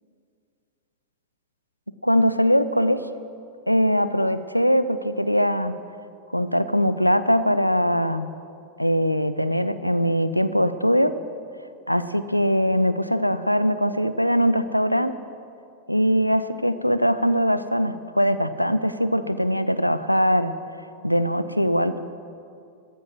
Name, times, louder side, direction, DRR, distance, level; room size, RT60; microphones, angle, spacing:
voice 1, 2.0-3.0 3.7-5.7 6.3-8.3 8.8-11.1 11.9-15.1 15.9-20.5 21.0-22.0, equal, 90° left, 13 dB, 0.5 m, -21 dB
13.5 x 13.0 x 6.2 m, 2.5 s
figure-of-eight pair, 90°, 0 cm